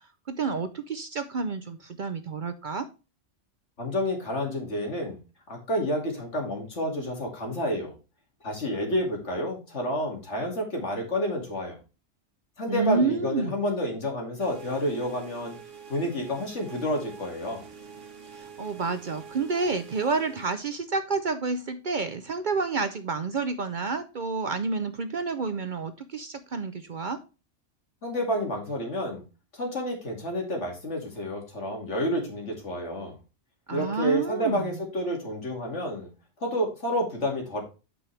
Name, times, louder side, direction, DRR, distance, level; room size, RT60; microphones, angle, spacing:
voice 1, 0.3-2.9 12.7-13.5 18.3-27.2 33.7-34.8, right 4 dB, 50° right, 10 dB, 0.7 m, -29 dB
voice 2, 3.8-5.2 5.5-7.9 8.4-11.8 12.6-15.5 15.9-17.7 28.0-29.2 29.5-33.2 33.7-36.1 36.4-37.6, equal, 70° left, 1 dB, 2.7 m, -29 dB
sound 1, 14.4-20.6, right 6 dB, 80° right, 1.4 m, -46 dB
8.6 x 5.5 x 3.2 m, 0.31 s
omnidirectional pair, 1.2 m